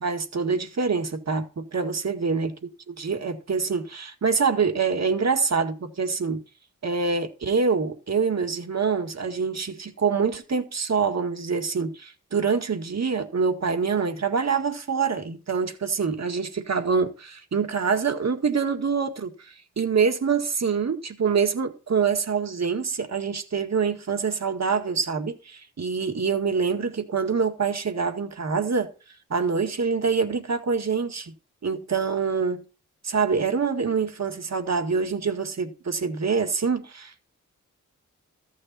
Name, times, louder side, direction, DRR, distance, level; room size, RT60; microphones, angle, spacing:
voice 1, 0.0-2.5 2.9-6.4 6.8-28.9 29.3-31.3 31.6-32.6 33.0-37.2, right 5 dB, 55° right, 1.9 m, -25 dB
14.0 x 6.7 x 4.2 m
cardioid pair, 65°, 32 cm